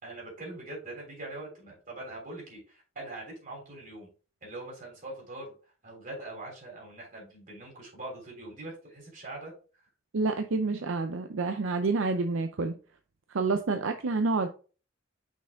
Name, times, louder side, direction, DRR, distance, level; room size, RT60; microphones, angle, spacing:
voice 1, 0.0-4.1 4.4-5.5 5.8-9.5, right 2 dB, 45° right, 3.4 m, -42 dB
voice 2, 10.1-12.7 13.3-14.5, right 3 dB, 75° right, 0.5 m, -28 dB
6.0 x 4.3 x 3.6 m
head